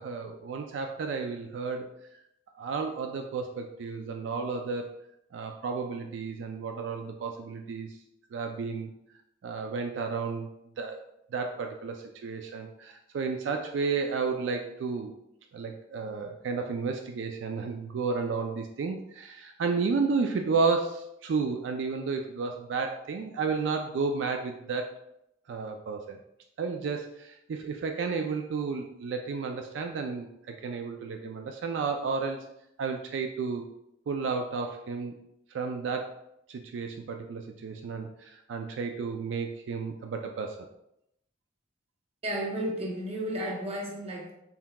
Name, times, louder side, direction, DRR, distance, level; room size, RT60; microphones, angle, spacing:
voice 1, 0.0-1.9 2.6-5.0 5.3-8.0 8.3-8.9 9.4-10.5 10.8-11.0 11.3-15.1 15.5-25.0 25.5-26.2 26.6-32.5 32.8-33.6 34.1-35.1 35.5-36.2 36.5-40.7, right 4 dB, 75° right, 4 dB, 0.3 m, -32 dB
voice 2, 42.2-44.3, right 1 dB, 35° right, -1 dB, 0.8 m, -33 dB
5.6 x 2.8 x 2.2 m, 0.82 s
head